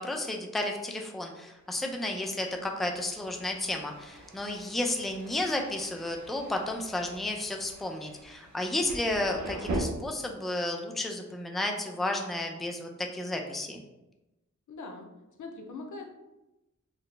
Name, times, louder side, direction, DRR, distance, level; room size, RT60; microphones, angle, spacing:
voice 1, 0.0-13.8, left 1 dB, ahead, 2 dB, 0.4 m, -32 dB
Thunder, 1.7-9.8, right 2 dB, 70° right, 0.7 m, -42 dB
voice 2, 14.7-15.1 15.4-16.1, left 3 dB, 80° left, 3 dB, 0.6 m, -41 dB
4.0 x 2.1 x 3.2 m, 0.97 s
wide cardioid pair, 85°, 30 cm